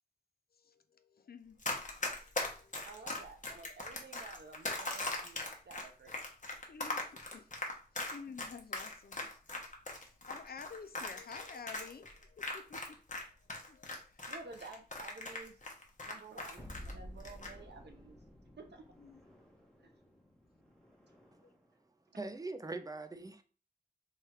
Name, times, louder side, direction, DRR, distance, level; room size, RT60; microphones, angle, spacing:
voice 1, 1.1-1.6 2.0-2.1 2.6-2.7 6.7-7.5 8.0-9.3 10.3-13.0 13.7-14.3 19.0-19.2 21.4-21.5, left 5 dB, 65° left, 0.4 m, -50 dB
Run, 1.6-13.2 13.5-16.9 17.2-17.5, left 2 dB, 50° left, 0.9 m, -39 dB
voice 2, 2.9-5.4 5.7-6.1 14.3-15.5 16.0-18.2 18.6-18.8, right 3 dB, 85° right, 0.6 m, -51 dB
sound 1, 16.6-21.7, equal, 5° left, 0.9 m, -53 dB
voice 3, 22.2-23.4, right 2 dB, 20° right, 0.4 m, -41 dB
3.2 x 2.4 x 4.3 m
wide cardioid pair, 70°, 17 cm